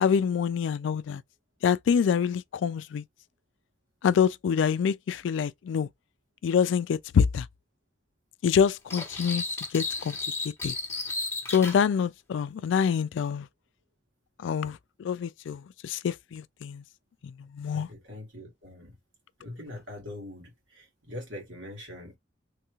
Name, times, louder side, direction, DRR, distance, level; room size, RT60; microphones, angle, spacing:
voice 1, 0.0-1.2 1.6-3.0 4.0-5.9 6.4-7.5 8.4-9.4 9.7-10.2 10.6-10.7 11.5-13.5 14.4-16.8 17.2-17.9, left 7 dB, 75° left, 0.3 m, -26 dB
sound 1, 8.9-11.8, left 3 dB, 15° left, 0.8 m, -33 dB
voice 2, 17.7-19.0 19.4-22.2, left 1 dB, 80° right, 1.8 m, -42 dB
3.2 x 2.3 x 3.0 m
head